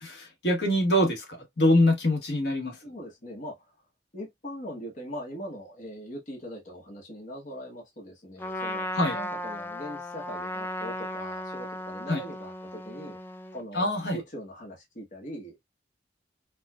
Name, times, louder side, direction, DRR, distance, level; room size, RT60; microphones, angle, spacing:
voice 1, 0.0-2.8 8.9-9.2 12.1-12.2 13.7-14.2, left 1 dB, 65° left, 1.3 m, -24 dB
voice 2, 2.8-3.6 4.1-8.9 9.1-13.2 13.5-15.7, equal, 45° left, 1.1 m, -41 dB
Trumpet, 8.4-13.6, left 1 dB, 10° left, 0.4 m, -36 dB
4.6 x 2.4 x 2.3 m
head